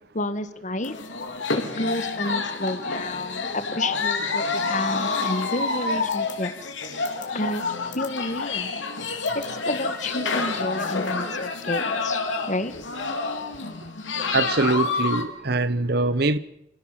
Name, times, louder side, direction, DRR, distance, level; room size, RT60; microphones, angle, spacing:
voice 1, 0.1-1.0 1.6-6.7 7.3-7.6 7.9-8.7 9.3-12.2 12.5-12.7, left 2 dB, 40° left, 1.5 m, -30 dB
sound 1, 0.8-15.2, left 4 dB, 80° left, 3.6 m, -28 dB
voice 2, 14.3-16.4, right 3 dB, 55° right, 0.9 m, -23 dB
28.0 x 16.0 x 7.5 m
head